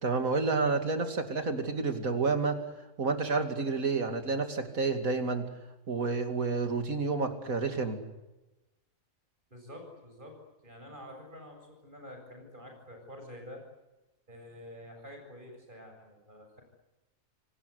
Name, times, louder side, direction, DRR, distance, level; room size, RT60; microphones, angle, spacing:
voice 1, 0.0-2.6 3.0-5.4 5.9-8.0, right 4 dB, 90° right, 7 dB, 3.0 m, -29 dB
voice 2, 9.5-10.4 10.6-13.6 14.3-16.6, equal, 35° right, 3 dB, 7.7 m, -48 dB
27.5 x 19.0 x 9.7 m, 1.0 s
omnidirectional pair, 1.4 m